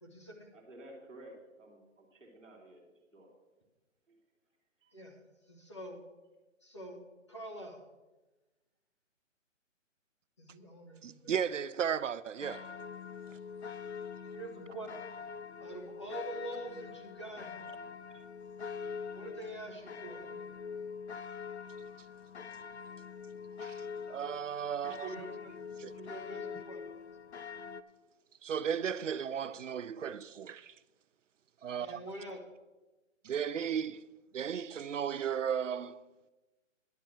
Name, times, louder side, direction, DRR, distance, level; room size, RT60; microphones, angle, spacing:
voice 1, 0.0-0.5 4.9-5.2 5.5-6.0 6.6-7.0 7.3-7.8 10.4-11.3 14.3-14.9 15.6-17.6 19.1-20.3 25.0-26.8 31.8-32.4, right 2 dB, 20° left, 1.2 m, -45 dB
voice 2, 0.5-3.3 4.1-4.2 4.8-4.9, right 1 dB, ahead, 1.1 m, -53 dB
voice 3, 11.0-12.7 23.6-25.1 25.8-25.9 28.4-30.7 31.6-32.0 33.2-36.0, right 8 dB, 70° right, 0.6 m, -35 dB
sound 1, 12.4-27.8, left 6 dB, 60° left, 0.6 m, -44 dB
10.5 x 5.5 x 7.5 m
hypercardioid pair, 180°, 39 cm